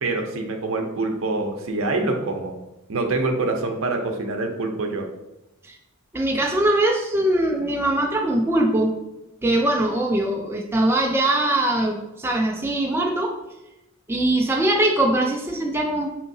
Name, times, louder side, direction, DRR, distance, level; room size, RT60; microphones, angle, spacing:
voice 1, 0.0-2.5 2.9-5.1, right 2 dB, 70° right, 3 dB, 0.6 m, -25 dB
voice 2, 6.1-9.0 9.4-13.4 14.1-16.1, right 1 dB, 10° right, 0 dB, 0.3 m, -21 dB
5.5 x 2.8 x 2.6 m, 0.98 s
head